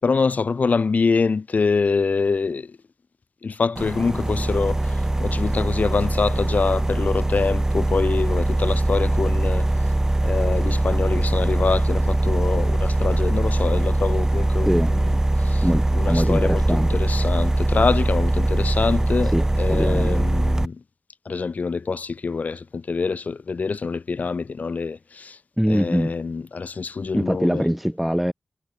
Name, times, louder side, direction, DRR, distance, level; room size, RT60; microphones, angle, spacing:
voice 1, 0.0-2.8 3.4-9.9 10.2-15.7 15.9-20.8 21.2-25.4 25.7-27.6, left 4 dB, 75° left, 6.4 m, -25 dB
sound 1, 3.8-20.7, right 1 dB, 20° right, 2.4 m, -21 dB
voice 2, 14.6-15.2 15.6-17.0 19.2-20.3 25.6-26.1 27.1-28.3, equal, 5° right, 6.7 m, -23 dB
wide cardioid pair, 100°, 3 cm